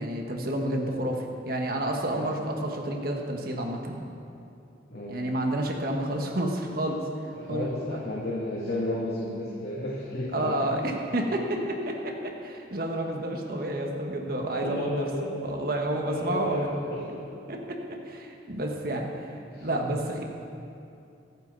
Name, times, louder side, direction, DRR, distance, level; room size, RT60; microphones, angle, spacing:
voice 1, 0.0-4.0 5.1-7.0 7.4-7.7 10.3-15.0 15.4-16.6 17.5-17.8 18.0-19.1 19.6-20.2, right 1 dB, 55° right, 1 dB, 1.5 m, -30 dB
voice 2, 4.9-5.2 7.3-10.8 14.2-14.3 14.6-15.4 16.0-17.2 19.5-20.0, left 1 dB, 60° left, -7 dB, 2.5 m, -33 dB
25.5 x 8.9 x 4.1 m, 2.6 s
head